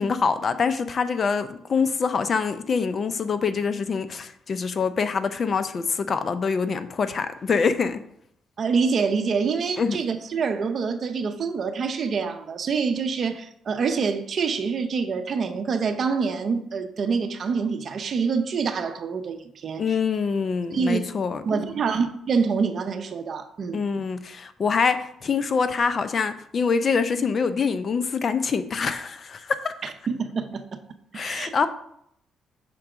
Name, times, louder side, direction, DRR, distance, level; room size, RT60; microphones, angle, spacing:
voice 1, 0.0-8.0 9.8-10.0 19.8-21.4 23.7-29.7 31.1-31.7, left 5 dB, 45° left, 0.5 m, -25 dB
voice 2, 8.6-19.8 20.7-21.0 21.5-23.8 29.8-30.8 31.1-31.5, right 5 dB, 50° right, 0.7 m, -26 dB
6.0 x 3.5 x 4.9 m
cardioid pair, 90°, 0 cm